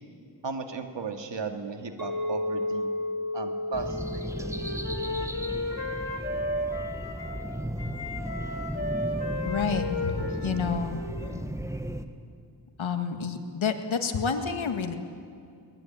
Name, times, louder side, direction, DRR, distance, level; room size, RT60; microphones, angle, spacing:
voice 1, 0.4-2.9 3.3-4.5, right 4 dB, 70° right, 5 dB, 2.3 m, -36 dB
Chink clink, 2.0-6.2, left 2 dB, 50° right, 5.5 m, -33 dB
sound 1, 3.7-12.0, right 1 dB, 5° right, 1.3 m, -35 dB
Wind instrument woodwind instrument, 3.9-7.4 7.8-11.5, left 2 dB, 60° left, 4.9 m, -34 dB
voice 2, 9.5-11.0 12.8-14.9, left 5 dB, 85° left, 6 dB, 2.0 m, -29 dB
23.0 x 20.0 x 9.3 m, 2.3 s
wide cardioid pair, 80°, 46 cm